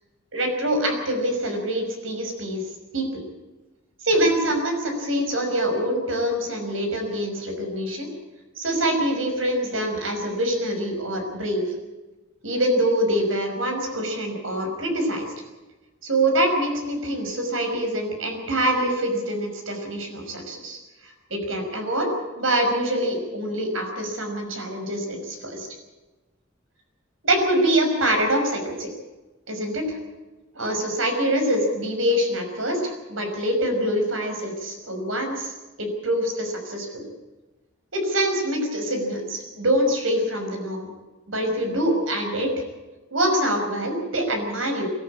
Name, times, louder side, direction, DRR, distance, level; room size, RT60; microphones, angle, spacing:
voice 1, 0.3-2.6 2.9-3.2 4.0-8.1 8.6-11.7 12.4-15.3 16.0-22.1 22.4-25.7 27.2-28.9 29.5-30.0 30.6-35.5 35.8-37.0 37.9-40.9 41.3-42.5 43.1-44.9, right 1 dB, 85° right, 4 dB, 5.7 m, -25 dB
22.5 x 14.5 x 8.6 m, 1.1 s
head